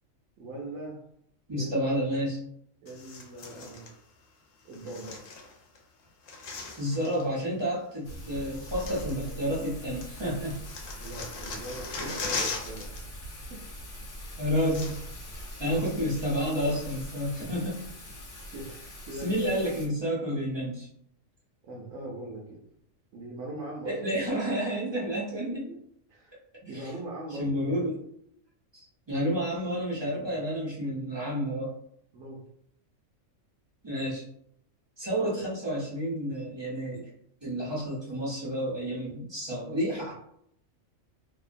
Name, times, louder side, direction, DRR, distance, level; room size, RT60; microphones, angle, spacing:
voice 1, 0.4-1.0 1.5-1.7 2.1-2.2 2.8-3.9 4.6-5.2 11.0-12.9 13.2-13.6 15.3-15.7 16.1-16.2 18.5-19.7 21.6-22.6 23.1-24.3 25.7-25.8 26.1-27.9 30.1-30.3 30.8-31.0 32.1-32.4 36.9-37.0, right 1 dB, 75° right, -3 dB, 0.9 m, -41 dB
voice 2, 1.5-2.4 6.8-10.6 12.0-12.2 14.4-14.9 15.6-17.8 19.2-20.9 23.8-25.6 26.7-26.9 27.3-28.0 28.7-31.7 33.8-34.2 35.0-37.0 37.4-40.1, equal, 40° right, -5 dB, 0.3 m, -30 dB
sound 1, 2.9-3.9 4.7-5.8 6.0-7.3 8.1-8.2 8.5-9.7 10.0-13.0 13.3-13.5 14.2-14.3 14.5-15.3 15.6-15.7 16.2-17.2 17.7-17.8, left 4 dB, 75° left, 0.9 m, -39 dB
Thunder / Rain, 8.0-19.9, equal, 50° left, 0.8 m, -42 dB
2.7 x 2.1 x 2.4 m, 0.71 s
omnidirectional pair, 1.4 m